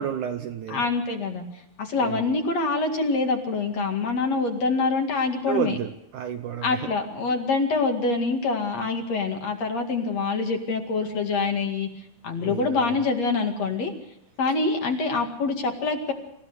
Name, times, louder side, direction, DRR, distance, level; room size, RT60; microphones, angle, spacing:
voice 1, 0.0-0.9 2.0-2.4 5.5-6.9 12.4-13.0, right 9 dB, 70° right, 7 dB, 2.0 m, -31 dB
voice 2, 0.7-1.4 1.8-5.8 6.6-11.9 12.2-13.9 14.4-16.1, left 4 dB, 50° left, 3 dB, 3.1 m, -25 dB
27.5 x 15.5 x 6.6 m, 0.81 s
omnidirectional pair, 4.3 m